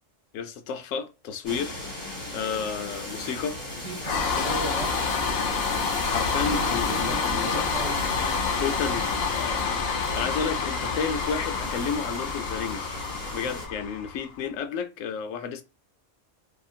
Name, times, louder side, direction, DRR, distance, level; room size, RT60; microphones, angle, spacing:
voice 1, 0.3-1.8 2.3-3.6 6.0-7.7 8.6-12.9 13.3-15.6, left 6 dB, 90° left, 1.0 m, -32 dB
sound 1, 1.4-13.7, left 1 dB, 30° left, 1.8 m, -36 dB
voice 2, 3.6-4.9 6.5-8.0, right 4 dB, 65° right, 1.3 m, -37 dB
sound 2, 4.0-14.3, left 5 dB, 60° left, 0.8 m, -28 dB
2.9 x 2.4 x 2.6 m
omnidirectional pair, 1.3 m